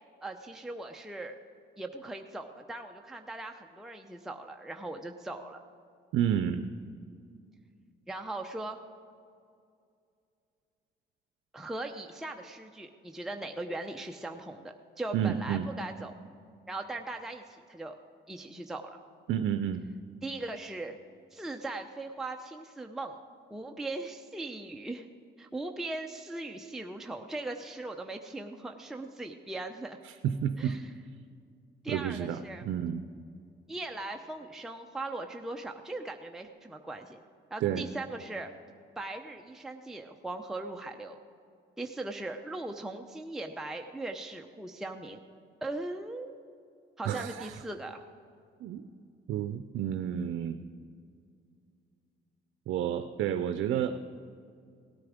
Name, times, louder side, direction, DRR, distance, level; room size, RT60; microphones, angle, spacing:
voice 1, 0.2-1.4 1.8-5.6 8.1-8.8 11.5-16.1 16.7-18.0 18.3-19.0 20.2-21.0 21.3-23.2 23.5-25.1 25.4-30.0 30.6-30.8 31.8-32.6 33.7-37.2 37.5-38.5 39.0-41.2 41.8-45.2 45.6-46.3 47.0-48.0, right 2 dB, ahead, 3 dB, 0.7 m, -39 dB
voice 2, 6.1-6.7 15.1-15.7 19.3-19.8 30.0-30.8 31.9-33.0 37.6-37.9 47.0-47.6 48.6-48.8 49.3-50.6 52.7-54.0, right 9 dB, 80° right, 9 dB, 0.5 m, -30 dB
17.5 x 9.4 x 5.0 m, 2.4 s
cardioid pair, 90°, 20 cm